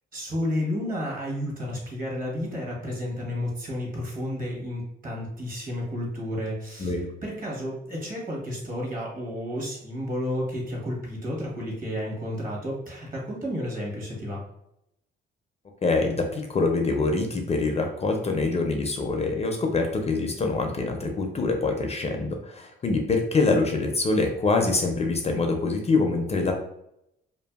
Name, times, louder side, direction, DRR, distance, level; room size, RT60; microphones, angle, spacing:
voice 1, 0.1-14.4, left 1 dB, 45° right, -2 dB, 1.1 m, -31 dB
voice 2, 15.8-26.5, left 3 dB, 30° left, 3 dB, 0.4 m, -25 dB
2.5 x 2.5 x 2.3 m, 0.80 s
cardioid pair, 90°, 20 cm